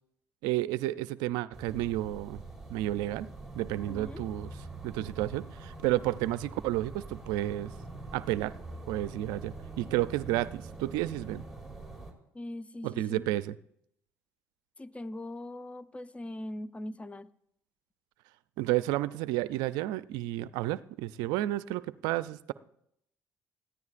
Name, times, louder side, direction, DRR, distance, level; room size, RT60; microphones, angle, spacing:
voice 1, 0.4-2.4 2.7-3.3 3.6-4.5 4.8-7.7 8.1-8.5 8.9-11.4 12.8-13.5 18.6-22.5, right 15 dB, 80° right, 16 dB, 0.4 m, -31 dB
sound 1, 1.5-12.1, right 3 dB, 5° right, 3.5 m, -44 dB
voice 2, 3.9-4.3 12.3-13.3 14.8-17.3, left 1 dB, 20° left, 15 dB, 0.6 m, -41 dB
20.5 x 14.5 x 2.5 m, 0.74 s
supercardioid pair, 70°, 7 cm